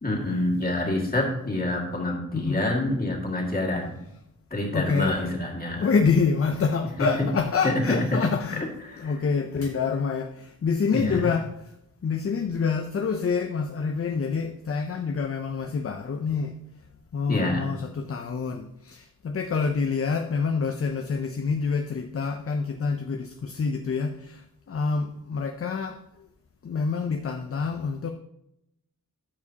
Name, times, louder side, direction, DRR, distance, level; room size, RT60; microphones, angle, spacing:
voice 1, 0.0-4.0 4.5-5.9 7.0-7.3 7.6-8.2 8.8-9.2 10.9-11.3 17.3-17.7, left 1 dB, 25° left, -2 dB, 2.0 m, -27 dB
voice 2, 4.7-5.2 5.8-8.6 9.0-11.5 12.0-16.5 17.1-26.0 26.6-28.1, left 5 dB, 40° left, 6 dB, 0.5 m, -27 dB
12.5 x 4.8 x 2.8 m, 0.81 s
wide cardioid pair, 80°, 36 cm